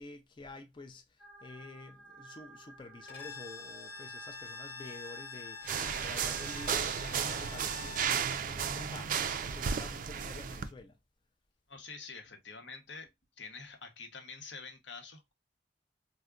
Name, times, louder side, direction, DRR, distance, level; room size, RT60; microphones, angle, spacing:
voice 1, 0.0-11.0, left 2 dB, 25° left, 0.4 m, -49 dB
sound 1, 1.2-6.7, equal, 10° right, 0.7 m, -51 dB
Bowed string instrument, 3.1-8.3, left 4 dB, 60° left, 1.2 m, -47 dB
sound 2, 5.6-10.7, right 7 dB, 50° right, 0.3 m, -34 dB
voice 2, 11.7-13.1 13.4-15.3, left 4 dB, 80° left, 0.9 m, -47 dB
4.6 x 2.1 x 2.3 m
head